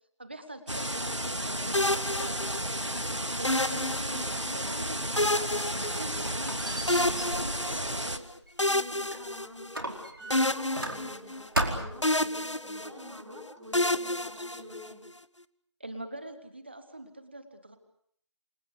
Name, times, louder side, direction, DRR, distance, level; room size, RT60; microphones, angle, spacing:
voice 1, 0.2-5.7 6.0-8.3 15.8-17.8, right 1 dB, 20° right, 9 dB, 1.7 m, -44 dB
sound 1, 0.7-8.2, right 1 dB, 80° right, 2.3 m, -33 dB
sound 2, 1.7-2.9 3.4-4.6 5.2-6.5 6.9-8.1 8.6-9.9 10.3-11.7 12.0-13.2 13.7-15.1, left 1 dB, 85° left, 1.3 m, -30 dB
Squeak, 5.5-9.3 9.7-11.3 11.5-12.1, right 1 dB, 50° right, 4.6 m, -36 dB
voice 2, 8.7-9.9 10.2-15.0, left 1 dB, ahead, -11 dB, 1.5 m, -46 dB
28.5 x 25.0 x 6.8 m, 0.67 s
figure-of-eight pair, 170°, 15 cm